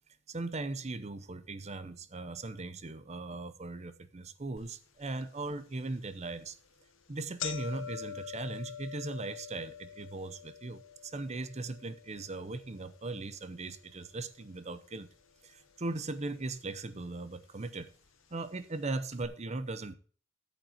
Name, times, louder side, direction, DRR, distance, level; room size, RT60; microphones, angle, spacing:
voice 1, 0.3-6.6 7.1-15.1 15.4-17.9 18.3-19.9, right 2 dB, 35° right, 0.7 m, -39 dB
sound 1, 4.6-4.7 5.2-5.3 6.1-6.3 6.7-6.8 7.0-15.2 15.5-16.2 17.0-17.1 18.1-18.2 18.5-18.6 19.1-19.3, left 9 dB, 75° left, 0.9 m, -46 dB
13.5 x 8.2 x 2.9 m
head